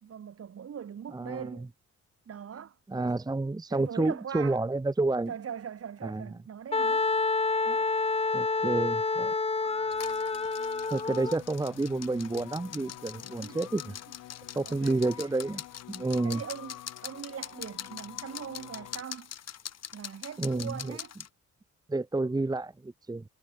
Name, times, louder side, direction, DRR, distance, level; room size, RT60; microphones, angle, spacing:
voice 1, 0.0-1.7 2.3-3.1 3.7-4.6 5.3-7.1 13.4-13.6 14.7-15.0 16.2-19.3 19.9-21.1, right 8 dB, 50° right, 2.9 m, -41 dB
voice 2, 1.1-1.6 2.9-5.3 6.0-6.3 7.6-7.8 8.3-9.3 10.9-13.9 14.5-15.6 15.9-16.4 20.4-21.0 21.9-23.2, right 2 dB, 15° right, 1.0 m, -30 dB
Wind instrument woodwind instrument, 6.7-11.4, left 3 dB, 20° left, 1.7 m, -28 dB
sound 1, 9.6-19.0, left 14 dB, 85° left, 3.3 m, -48 dB
sound 2, 9.9-21.3, left 9 dB, 55° left, 4.3 m, -43 dB
cardioid pair, 90°, 30 cm